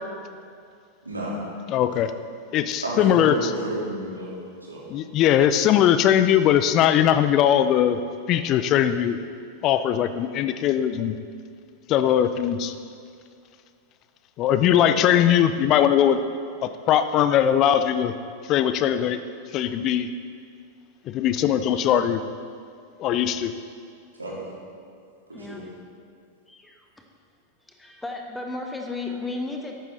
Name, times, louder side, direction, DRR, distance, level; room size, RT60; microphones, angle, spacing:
voice 1, 1.0-1.3 2.8-4.8 5.6-5.7 14.7-15.1 24.1-24.5 25.3-25.6, right 1 dB, 80° right, -5 dB, 3.6 m, -31 dB
voice 2, 1.7-2.1 2.5-3.5 4.9-8.0 8.3-9.2 9.6-11.1 11.9-12.7 14.4-16.2 16.6-18.1 18.5-19.2 19.5-20.1 21.1-22.2 23.0-23.5, left 10 dB, 35° left, 11 dB, 0.6 m, -20 dB
voice 3, 25.3-25.7 26.5-27.1 27.6-29.7, left 3 dB, 5° left, 2 dB, 1.4 m, -35 dB
13.5 x 12.0 x 4.1 m, 2.3 s
figure-of-eight pair, 90°, 0 cm